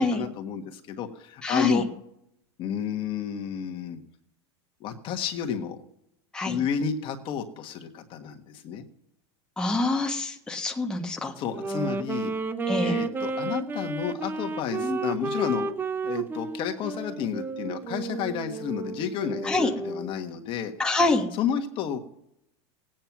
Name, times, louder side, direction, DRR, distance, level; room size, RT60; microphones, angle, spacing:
voice 1, 0.0-1.8 2.6-4.0 4.8-5.8 6.4-8.8 11.4-12.3 12.8-15.7 16.0-20.7 21.3-22.0, left 8 dB, 35° left, 5 dB, 1.6 m, -31 dB
voice 2, 1.4-1.9 6.3-6.6 9.6-11.3 12.7-13.0 14.8-15.0 19.4-19.7 20.8-21.3, left 2 dB, 5° left, 1 dB, 1.5 m, -26 dB
Wind instrument woodwind instrument, 11.5-20.2, right 3 dB, 15° right, 0.7 m, -32 dB
18.5 x 9.1 x 6.0 m, 0.76 s
supercardioid pair, 140°, 15 cm